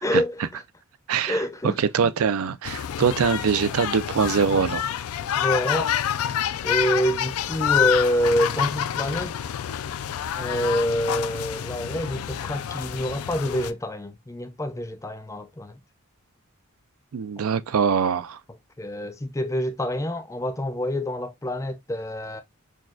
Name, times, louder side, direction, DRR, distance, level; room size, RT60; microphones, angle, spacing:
voice 1, 0.0-0.6 1.3-1.8 5.3-5.9 6.6-9.4 10.4-15.8 18.8-22.4, equal, 15° left, 0.5 m, -27 dB
voice 2, 1.1-1.4 1.6-4.9 17.1-18.4, right 6 dB, 80° right, 0.4 m, -23 dB
sound 1, 2.6-13.7, left 10 dB, 80° left, 0.4 m, -28 dB
6.3 x 2.4 x 2.4 m
head